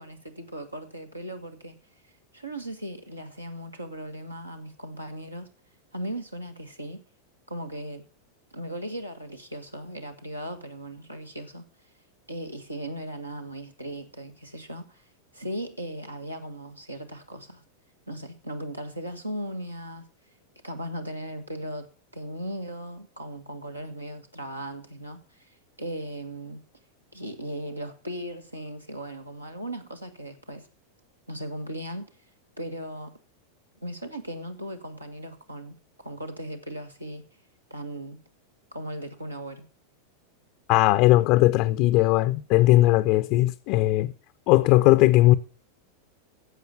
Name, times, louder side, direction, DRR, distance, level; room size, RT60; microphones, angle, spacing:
voice 1, 0.0-1.8 2.3-5.5 5.9-7.0 7.5-8.0 8.5-11.7 12.3-15.0 15.3-17.6 18.1-20.1 20.6-26.6 27.1-30.7 31.3-32.1 32.6-33.1 33.8-37.2 37.7-38.2 38.7-39.6, right 1 dB, 85° right, 1.6 m, -37 dB
voice 2, 40.7-44.1 44.5-45.4, left 17 dB, 45° left, 0.5 m, -19 dB
11.0 x 7.8 x 6.9 m
figure-of-eight pair, 90°, 0 cm